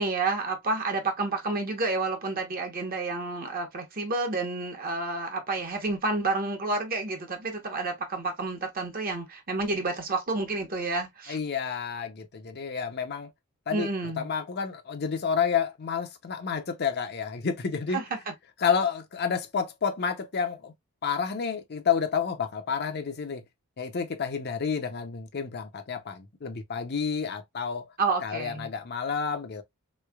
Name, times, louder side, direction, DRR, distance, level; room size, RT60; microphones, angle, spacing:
voice 1, 0.0-11.4 13.7-14.3 17.9-18.2 28.0-28.7, right 3 dB, 40° right, 1.0 m, -30 dB
voice 2, 11.3-13.3 13.7-13.9 14.2-18.0 18.6-20.7 21.0-23.4 23.8-27.9 28.2-29.6, left 6 dB, 50° left, 0.6 m, -30 dB
3.6 x 3.2 x 2.3 m
head